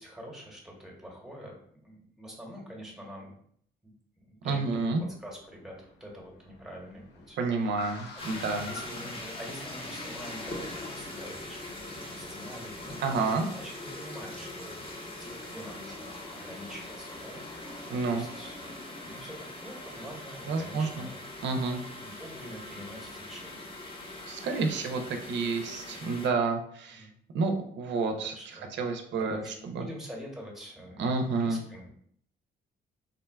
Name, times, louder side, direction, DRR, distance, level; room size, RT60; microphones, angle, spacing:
voice 1, 0.0-3.4 3.8-4.6 5.2-18.8 19.0-21.2 22.0-23.7 26.9-27.1 28.3-28.7 29.1-31.9, equal, ahead, -1 dB, 0.9 m, -46 dB
voice 2, 4.4-5.0 7.4-8.7 13.0-13.5 17.9-18.3 20.5-21.1 21.4-21.8 24.3-27.1 27.3-29.8 31.0-31.6, right 4 dB, 65° right, 5 dB, 0.5 m, -30 dB
Car, 5.0-12.3, left 3 dB, 60° left, 0.5 m, -49 dB
sound 1, 8.2-26.3, left 2 dB, 30° left, 0.7 m, -42 dB
3.6 x 2.2 x 2.3 m, 0.64 s
cardioid pair, 90°, 20 cm